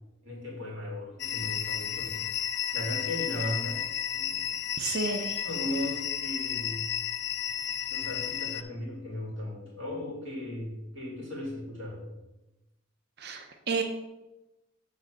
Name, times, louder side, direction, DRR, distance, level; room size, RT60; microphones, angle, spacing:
voice 1, 0.2-2.2 2.7-3.8 4.1-4.6 5.4-6.9 7.9-12.0, left 1 dB, 75° right, -3 dB, 3.0 m, -37 dB
sound 1, 1.2-8.6, left 10 dB, 55° left, 0.3 m, -33 dB
voice 2, 4.8-5.4 13.2-13.8, right 4 dB, 50° right, 5 dB, 0.6 m, -31 dB
7.4 x 4.0 x 6.4 m, 1.0 s
head